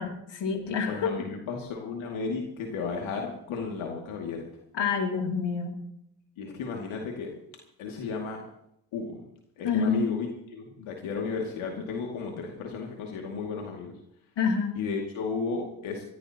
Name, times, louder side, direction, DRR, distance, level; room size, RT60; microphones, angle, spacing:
voice 1, 0.0-1.3 4.7-5.7 9.6-10.1 14.4-14.8, left 5 dB, 60° left, 2 dB, 2.9 m, -27 dB
voice 2, 0.9-4.5 6.4-7.3 7.8-8.4 8.9-9.2 9.6-13.9 14.8-16.1, left 5 dB, 80° left, 0 dB, 2.4 m, -34 dB
22.5 x 15.5 x 2.9 m, 0.76 s
supercardioid pair, 70°, 48 cm